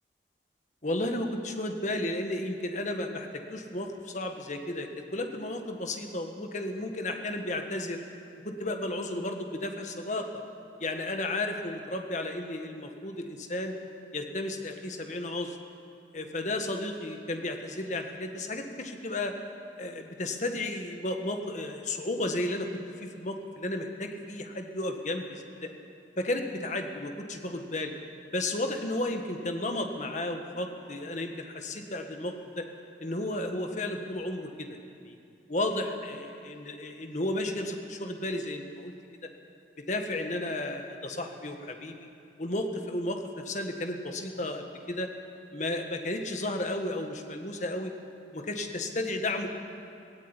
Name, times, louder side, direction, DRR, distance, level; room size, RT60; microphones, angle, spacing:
voice 1, 0.8-8.0 8.4-10.4 10.8-13.7 14.1-15.6 16.1-19.4 19.8-22.7 23.0-25.7 26.2-27.9 28.3-32.7 33.0-35.2 35.5-38.9 39.2-39.3 39.8-42.1 42.4-45.1 45.5-47.9 48.3-49.5, left 1 dB, 45° left, 4 dB, 1.7 m, -33 dB
17.0 x 16.5 x 9.9 m, 2.6 s
head